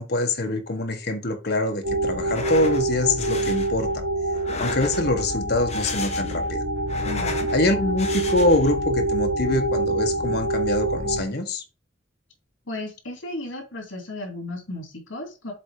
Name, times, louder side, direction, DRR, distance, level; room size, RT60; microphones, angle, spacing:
voice 1, 0.0-3.9 4.6-6.6 7.5-11.6, left 2 dB, 55° left, 5 dB, 1.5 m, -24 dB
sound 1, 1.8-11.2, right 1 dB, 75° right, 3.6 m, -26 dB
sound 2, 2.2-2.8 3.2-3.7 4.3-5.2 5.6-6.5 6.8-7.5 8.0-8.7, left 4 dB, 35° left, 1.3 m, -35 dB
voice 2, 7.0-7.5 12.7-15.5, left 2 dB, 80° left, 3 dB, 2.8 m, -34 dB
7.6 x 3.6 x 4.9 m, 0.30 s
head